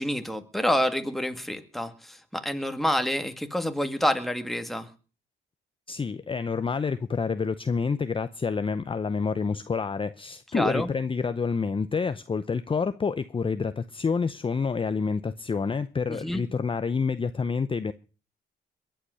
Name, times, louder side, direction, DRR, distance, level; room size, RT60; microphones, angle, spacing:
voice 1, 0.0-4.9 10.5-10.9 16.1-16.4, equal, ahead, 1.8 m, -28 dB
voice 2, 5.9-17.9, left 5 dB, 25° left, 0.7 m, -28 dB
22.0 x 8.0 x 6.3 m
cardioid pair, 90°, 20 cm